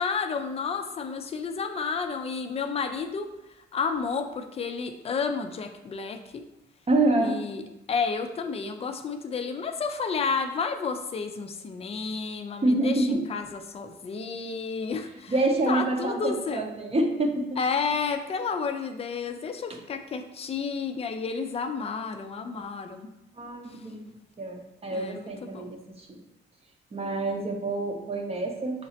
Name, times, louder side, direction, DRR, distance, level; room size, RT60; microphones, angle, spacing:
voice 1, 0.0-3.3 3.7-6.4 7.2-7.6 7.9-15.3 15.7-16.6 17.6-23.1 24.9-25.7, left 5 dB, 30° left, 7 dB, 0.4 m, -31 dB
voice 2, 6.9-7.4 12.6-13.2 15.3-17.5 23.4-26.2 26.9-28.9, right 2 dB, 30° right, 2 dB, 0.7 m, -27 dB
5.7 x 2.0 x 2.8 m, 0.90 s
cardioid pair, 90°, 20 cm